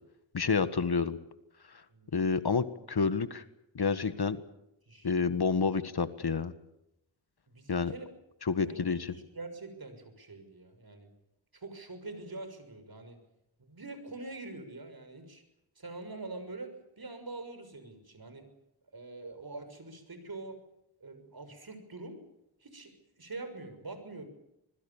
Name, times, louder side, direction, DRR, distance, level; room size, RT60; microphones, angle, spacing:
voice 1, 0.3-1.2 2.1-3.4 3.7-4.4 5.0-6.5 7.7-7.9 8.4-9.1, left 5 dB, 55° left, 12 dB, 1.7 m, -29 dB
voice 2, 1.9-2.3 4.9-5.1 7.5-8.1 8.6-11.1 11.5-13.2 13.6-15.4 15.8-18.5 18.9-20.6 21.0-22.2 22.6-24.3, right 3 dB, 50° right, 9 dB, 6.5 m, -45 dB
26.0 x 21.5 x 7.2 m, 0.83 s
cardioid pair, 65°, 46 cm